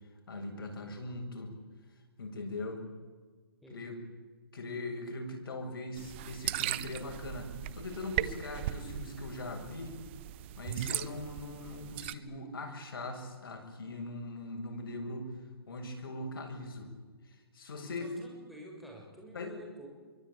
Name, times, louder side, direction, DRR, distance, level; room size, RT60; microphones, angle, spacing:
voice 1, 0.3-1.6 2.2-2.9 3.7-4.0 4.5-9.9 10.6-15.4 15.7-16.9 17.2-18.1 19.3-19.5, left 2 dB, 65° left, 4 dB, 8.0 m, -40 dB
voice 2, 3.6-4.0 17.8-19.9, right 1 dB, ahead, -2 dB, 6.3 m, -49 dB
sound 1, 6.0-12.1, right 14 dB, 30° right, 0.8 m, -38 dB
25.0 x 24.0 x 8.9 m, 1.4 s
hypercardioid pair, 155°, 13 cm